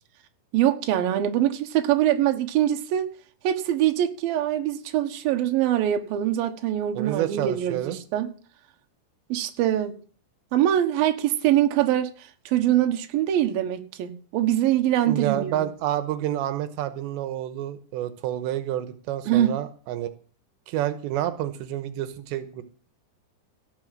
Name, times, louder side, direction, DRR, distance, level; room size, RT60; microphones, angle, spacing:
voice 1, 0.5-3.1 3.4-8.3 9.3-10.0 10.5-12.1 12.5-15.6 19.3-19.6, right 12 dB, 65° right, 2.8 m, -23 dB
voice 2, 6.9-8.0 15.1-20.1 20.7-22.6, right 12 dB, 90° right, 3.2 m, -29 dB
17.0 x 6.9 x 7.5 m
omnidirectional pair, 5.0 m